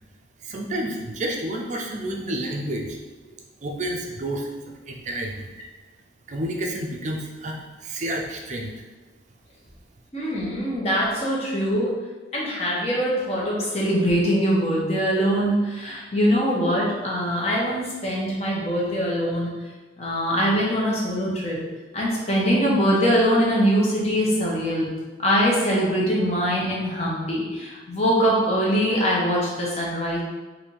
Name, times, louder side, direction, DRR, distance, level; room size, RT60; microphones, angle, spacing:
voice 1, 0.4-3.0 3.6-5.5 6.3-8.7, right 1 dB, 40° right, 1 dB, 0.5 m, -30 dB
voice 2, 10.1-12.0 12.3-19.6 20.0-21.6 21.9-24.9 25.2-30.2, equal, 35° left, -5 dB, 1.0 m, -23 dB
3.4 x 2.7 x 4.4 m, 1.3 s
head